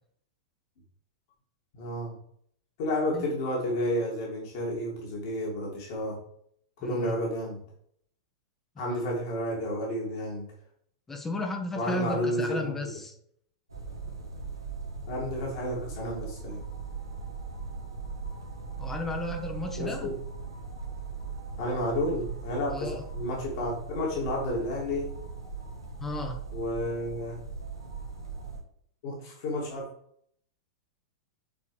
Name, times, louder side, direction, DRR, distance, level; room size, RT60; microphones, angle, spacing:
voice 1, 1.7-2.2 2.8-6.2 6.8-7.6 8.8-10.5 11.8-12.7 15.1-16.6 19.8-20.1 21.6-25.1 26.5-27.4 29.0-29.9, left 1 dB, 50° left, -2 dB, 2.5 m, -31 dB
voice 2, 6.8-7.2 8.9-9.0 11.1-13.1 18.8-20.1 22.7-23.0 26.0-26.4, left 2 dB, 15° left, 3 dB, 1.0 m, -34 dB
sound 1, 13.7-28.6, right 4 dB, 85° right, 1.5 m, -39 dB
8.5 x 4.6 x 3.4 m, 0.66 s
figure-of-eight pair, 95°, 2 cm